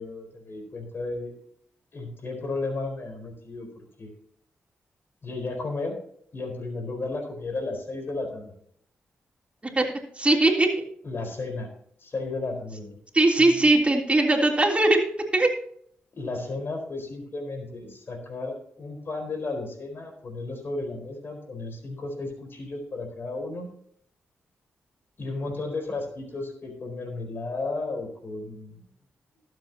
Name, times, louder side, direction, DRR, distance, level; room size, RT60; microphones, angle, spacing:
voice 1, 0.0-1.3 1.9-4.1 5.2-6.0 6.3-8.5 11.0-11.7 12.0-12.9 13.4-13.8 16.2-23.7 25.2-28.9, left 3 dB, 55° left, 3 dB, 4.4 m, -34 dB
voice 2, 10.2-10.8 13.1-15.5, right 2 dB, 25° right, 0 dB, 3.3 m, -20 dB
19.5 x 7.8 x 2.9 m, 0.65 s
supercardioid pair, 40°, 5 cm